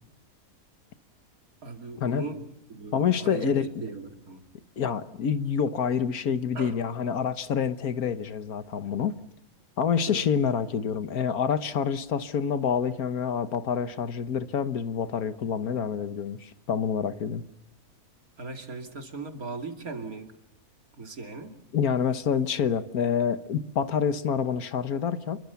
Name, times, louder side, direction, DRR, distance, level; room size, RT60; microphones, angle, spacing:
voice 1, 1.6-2.4 2.7-4.4 6.5-6.7 10.1-10.3 18.4-20.3 21.0-21.5, right 3 dB, 75° right, 3.1 m, -37 dB
voice 2, 2.9-3.7 4.8-9.1 9.8-17.4 21.7-25.4, left 7 dB, 80° left, 1.7 m, -27 dB
28.5 x 22.5 x 7.0 m
omnidirectional pair, 1.5 m